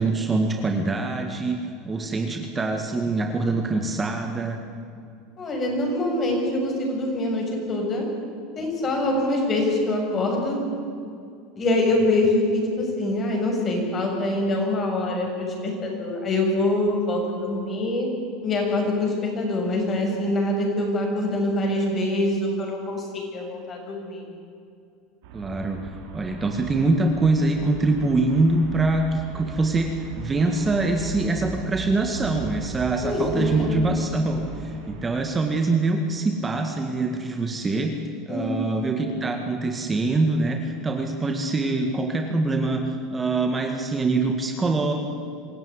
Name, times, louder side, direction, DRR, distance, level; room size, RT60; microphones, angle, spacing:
voice 1, 0.0-1.6 1.9-4.6 25.3-25.8 26.1-44.9, right 3 dB, 20° right, 4 dB, 1.9 m, -24 dB
voice 2, 5.4-8.1 8.6-10.6 11.6-18.1 18.4-24.3 33.0-33.8 38.3-38.9, left 1 dB, 30° left, 1 dB, 7.3 m, -24 dB
Traffic noise roadway noise, 25.2-35.0, right 4 dB, 75° right, 5.1 m, -38 dB
25.5 x 14.5 x 9.9 m, 2.5 s
supercardioid pair, 120°, 0 cm